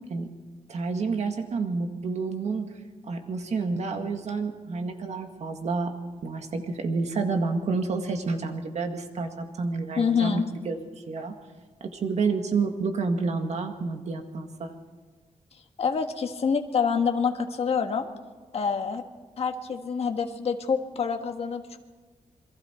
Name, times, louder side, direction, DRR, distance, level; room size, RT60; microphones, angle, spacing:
voice 1, 0.7-2.7 3.1-5.9 6.2-10.8 11.1-11.4 11.8-14.7, right 4 dB, 60° right, 5 dB, 1.9 m, -29 dB
voice 2, 10.0-10.4 15.8-18.1 18.5-19.0 19.4-21.8, left 6 dB, 50° left, 4 dB, 1.6 m, -26 dB
28.0 x 22.0 x 4.5 m, 1.4 s
wide cardioid pair, 175°, 13 cm